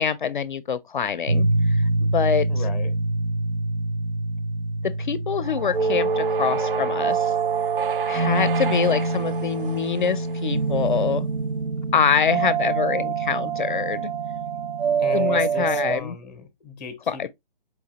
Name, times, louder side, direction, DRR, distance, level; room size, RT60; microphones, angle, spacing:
voice 1, 0.0-2.5 5.0-7.3 8.1-11.3 11.9-14.1 15.1-16.2 17.1-17.3, left 7 dB, 55° left, 0.4 m, -25 dB
sound 1, 1.3-16.0, right 3 dB, 90° right, 0.9 m, -25 dB
voice 2, 2.5-2.9 15.0-17.3, left 5 dB, 10° left, 0.5 m, -35 dB
sound 2, 5.4-10.7, right 6 dB, 65° right, 0.5 m, -33 dB
4.6 x 2.9 x 2.8 m
hypercardioid pair, 160°, 29 cm